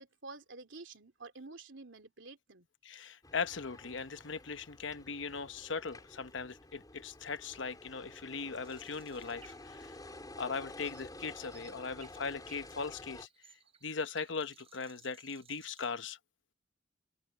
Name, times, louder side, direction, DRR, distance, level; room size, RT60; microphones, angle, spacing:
voice 1, 0.0-2.7, right 3 dB, 70° right, 3.4 m, -50 dB
voice 2, 2.8-10.0 10.4-13.3 13.8-16.2, left 5 dB, 70° left, 1.0 m, -39 dB
sound 1, 3.2-13.3, left 2 dB, 20° left, 4.1 m, -51 dB
sound 2, 8.6-16.0, right 6 dB, 30° right, 5.4 m, -62 dB
head